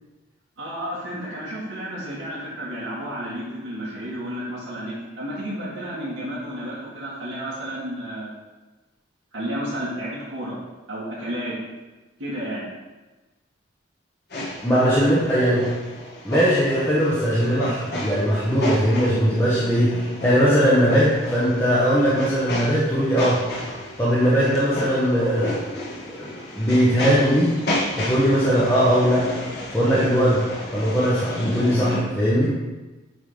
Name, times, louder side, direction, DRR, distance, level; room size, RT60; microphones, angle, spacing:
voice 1, 0.6-8.3 9.3-10.6 10.9-11.6 12.2-12.7 14.7-15.0, equal, 80° right, -10 dB, 2.1 m, -31 dB
sound 1, 14.3-32.0, left 1 dB, 50° left, 1.7 m, -32 dB
voice 2, 14.6-15.6 16.2-23.4 24.0-25.7 26.2-26.3 26.5-27.6 28.0-29.3 29.7-30.4 30.7-32.5, equal, 10° left, -9 dB, 1.2 m, -20 dB
9.0 x 3.8 x 5.0 m, 1.2 s
head